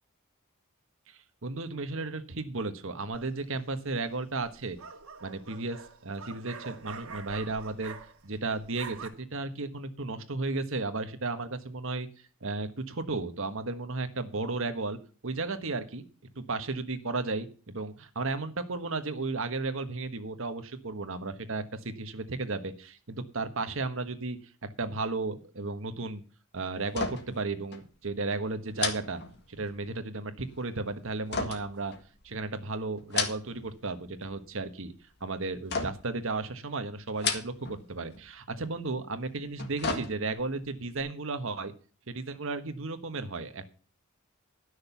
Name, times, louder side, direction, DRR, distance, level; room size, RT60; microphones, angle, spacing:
voice 1, 1.1-4.8 5.2-7.9 8.2-12.1 12.4-15.0 15.2-16.0 16.3-24.4 24.8-26.2 26.5-29.2 29.5-31.9 32.2-34.9 35.2-41.7 42.1-43.7, right 3 dB, 65° right, 9 dB, 1.4 m, -34 dB
sound 1, 3.1-3.6 4.5-8.4 8.6-9.1, right 5 dB, 80° right, 2.0 m, -45 dB
sound 2, 26.9-27.4 27.7-27.9 28.7-29.8 31.3-32.4 33.0-33.7 34.0-34.6 35.7-36.2 37.1-37.8 38.1-38.3 39.4-40.5 40.9-41.0, left 5 dB, 50° left, 1.9 m, -34 dB
12.0 x 6.5 x 7.0 m, 0.38 s
head